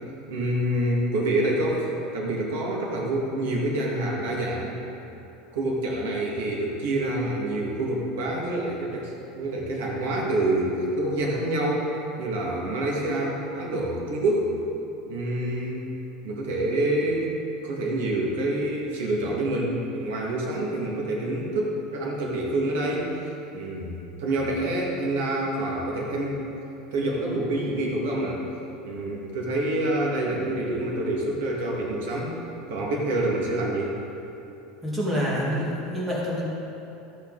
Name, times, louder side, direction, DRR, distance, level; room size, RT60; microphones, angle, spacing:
voice 1, 0.3-4.8 5.5-11.9 12.2-14.5 15.1-15.9 16.2-17.3 17.6-23.1 23.5-26.4 26.9-28.4 28.8-32.3 32.7-33.9, right 1 dB, 85° right, -2 dB, 2.1 m, -27 dB
voice 2, 34.8-36.4, equal, 10° right, -6 dB, 2.2 m, -27 dB
13.5 x 8.4 x 4.1 m, 2.9 s
supercardioid pair, 165°, 0 cm